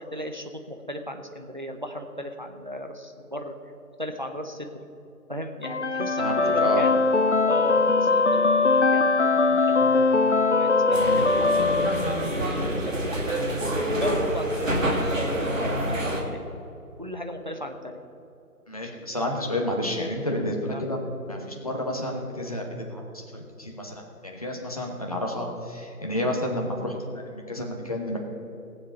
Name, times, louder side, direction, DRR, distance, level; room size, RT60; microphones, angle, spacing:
voice 1, 0.0-3.5 4.0-4.8 5.3-7.0 7.5-9.9 10.4-13.5 13.9-16.5 17.0-18.0 20.7-20.8, equal, 30° right, 5 dB, 0.7 m, -36 dB
sound 1, 5.6-12.6, left 3 dB, 50° left, 0.5 m, -21 dB
voice 2, 6.2-6.8 18.7-21.0 21.3-28.2, left 1 dB, 25° left, 0 dB, 1.1 m, -30 dB
sound 2, 10.9-16.2, right 1 dB, 55° right, 2.1 m, -27 dB
19.0 x 7.4 x 5.4 m, 2.8 s
figure-of-eight pair, 165°, 47 cm